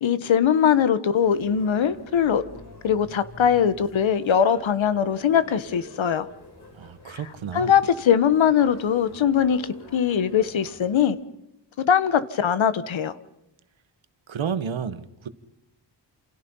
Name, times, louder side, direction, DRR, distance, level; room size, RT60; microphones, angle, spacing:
voice 1, 0.0-2.4 2.8-6.3 7.5-9.6 9.9-11.2 11.9-13.1, left 8 dB, 85° left, 1.4 m, -21 dB
sound 1, 1.2-11.0, left 2 dB, 55° left, 7.6 m, -46 dB
voice 2, 6.8-7.7 14.3-15.3, right 7 dB, 80° right, 1.6 m, -31 dB
28.5 x 28.0 x 5.6 m
wide cardioid pair, 110°, 46 cm